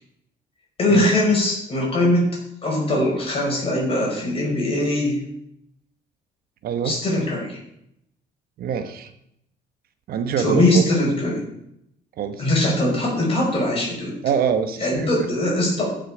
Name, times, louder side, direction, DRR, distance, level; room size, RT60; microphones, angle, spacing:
voice 1, 0.8-2.2 2.6-5.2 6.8-7.6 10.4-11.4 12.4-14.1 14.8-15.9, left 1 dB, 35° left, -2 dB, 5.3 m, -21 dB
voice 2, 6.6-7.0 8.6-9.1 10.1-10.8 12.2-12.5 14.2-15.1, right 7 dB, 65° right, 9 dB, 1.2 m, -24 dB
14.0 x 6.5 x 5.0 m, 0.77 s
cardioid pair, 110°, 17 cm